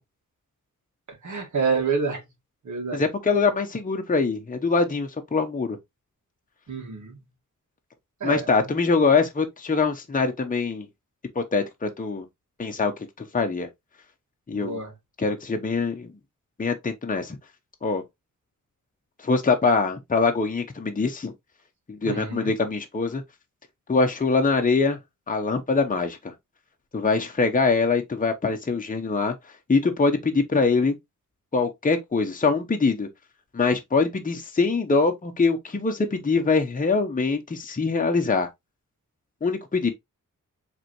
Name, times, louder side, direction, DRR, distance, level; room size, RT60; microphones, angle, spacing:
voice 1, 1.2-2.2 2.6-3.0 6.7-7.2 8.2-8.5 14.5-14.9 22.0-22.5, right 5 dB, 65° right, 1.9 m, -27 dB
voice 2, 2.9-5.8 8.2-10.8 11.3-12.2 12.6-12.9 13.2-13.7 14.5-14.8 15.2-16.1 16.6-17.4 17.8-18.0 19.2-21.3 21.9-23.2 23.9-25.0 25.3-26.2 26.9-29.3 29.7-30.9 31.5-33.1 33.5-38.5 39.4-39.9, left 4 dB, 25° left, 0.9 m, -23 dB
4.9 x 3.5 x 3.0 m
cardioid pair, 70°, 32 cm